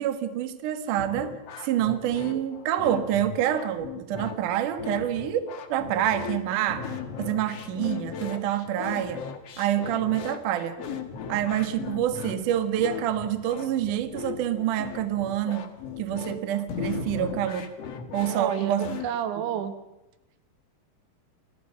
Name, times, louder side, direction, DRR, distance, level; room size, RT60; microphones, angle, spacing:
voice 1, 0.0-1.4 1.6-6.9 7.2-9.2 9.6-10.8 11.3-15.7 16.0-17.8 18.1-19.0, right 11 dB, 60° right, 9 dB, 2.4 m, -27 dB
sound 1, 1.0-19.1, left 7 dB, 60° left, 1.7 m, -38 dB
sound 2, 6.7-10.4 11.2-16.2 16.7-17.5, left 2 dB, 85° left, 5.4 m, -42 dB
voice 2, 18.3-19.7, right 9 dB, 85° right, 10 dB, 3.8 m, -30 dB
29.0 x 23.0 x 5.8 m, 0.93 s
omnidirectional pair, 5.1 m